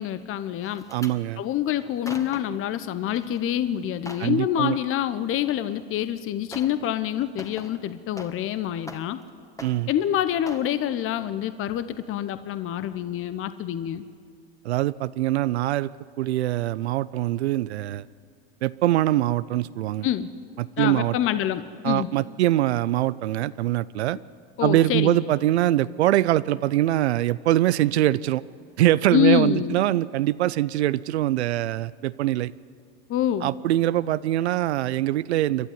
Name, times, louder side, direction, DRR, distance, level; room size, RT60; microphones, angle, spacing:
voice 1, 0.0-0.8 1.4-9.2 9.9-14.1 20.0-20.3 20.8-22.1 24.6-25.2 29.1-29.7 33.1-33.5, left 11 dB, 40° left, 13 dB, 0.9 m, -26 dB
sound 1, 0.6-1.2 1.8-2.6 3.1-3.4 3.8-4.4 5.7-5.8 6.5-6.9 7.2-8.5 8.8-9.3 9.6-10.1 10.5-10.7 11.2-11.4 11.7-11.8, left 1 dB, 10° left, 1.8 m, -42 dB
voice 2, 0.9-1.4 4.2-4.8 9.6-9.9 14.6-15.9 16.2-18.0 18.6-20.1 20.6-21.2 21.8-24.2 24.6-28.4 28.8-32.5 33.4-35.7, right 14 dB, 90° right, 17 dB, 0.5 m, -23 dB
28.0 x 11.5 x 9.8 m, 2.2 s
hypercardioid pair, 90°, 32 cm